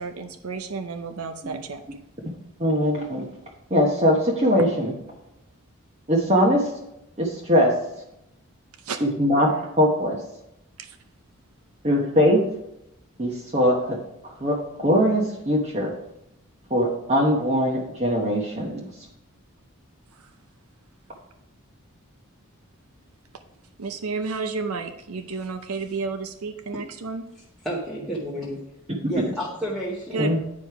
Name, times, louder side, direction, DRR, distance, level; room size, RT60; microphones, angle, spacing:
voice 1, 0.0-1.8 8.8-9.0 10.8-11.0 20.1-20.3 23.8-27.2 30.1-30.3, right 4 dB, 85° right, 8 dB, 0.6 m, -31 dB
voice 2, 2.6-3.3 3.7-4.9 6.1-6.7 7.2-7.7 9.0-10.2 11.8-12.4 13.2-14.0 14.2-15.9 16.7-18.9 30.2-30.4, equal, 30° right, -1 dB, 1.0 m, -21 dB
voice 3, 27.6-28.6 29.1-30.4, right 1 dB, ahead, -6 dB, 1.0 m, -30 dB
9.3 x 5.1 x 4.7 m, 0.83 s
head